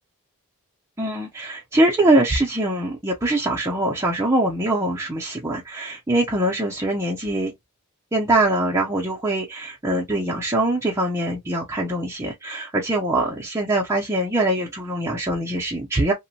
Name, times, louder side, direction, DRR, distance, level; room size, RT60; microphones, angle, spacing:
voice 1, 1.0-7.5 8.1-16.1, right 1 dB, 10° right, 0.4 m, -23 dB
2.9 x 2.1 x 2.6 m
head